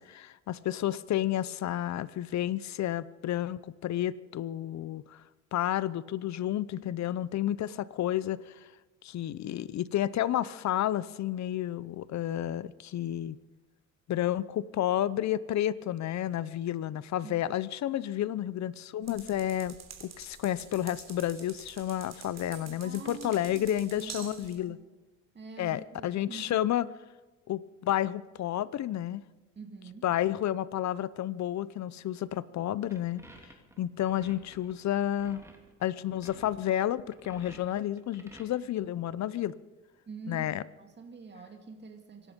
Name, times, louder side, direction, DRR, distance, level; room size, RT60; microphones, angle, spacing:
voice 1, 0.0-5.2 5.5-8.6 9.0-13.4 14.1-24.8 25.6-26.9 27.5-29.2 30.0-33.2 33.8-35.4 35.8-39.5 40.3-40.6, left 12 dB, 65° left, 18 dB, 0.7 m, -31 dB
sound 1, 19.0-24.6, right 7 dB, 60° right, 3.3 m, -48 dB
voice 2, 22.8-24.8 25.3-26.5 29.6-30.1 40.1-40.5 40.8-42.3, right 4 dB, 35° right, 4 dB, 2.2 m, -46 dB
sound 2, 32.9-38.4, right 1 dB, 10° right, 2.8 m, -52 dB
24.5 x 11.0 x 5.3 m, 1.2 s
cardioid pair, 90°, 30 cm